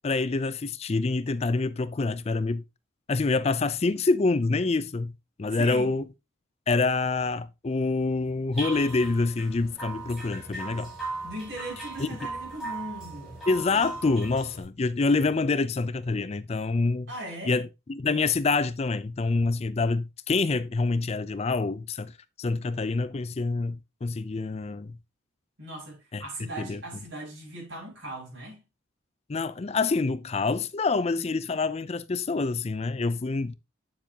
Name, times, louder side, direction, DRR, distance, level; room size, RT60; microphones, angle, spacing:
voice 1, 0.0-2.6 3.1-5.1 5.4-6.0 6.7-10.9 12.0-12.1 13.5-17.1 17.5-25.0 26.1-26.2 26.6-26.8 29.3-33.6, left 3 dB, 30° left, 0.4 m, -26 dB
voice 2, 5.5-5.9 11.2-13.4 17.1-17.5 25.6-28.6, right 1 dB, 60° right, 6.2 m, -39 dB
sound 1, 8.5-14.6, right 3 dB, ahead, 5.5 m, -38 dB
9.1 x 7.4 x 2.8 m
head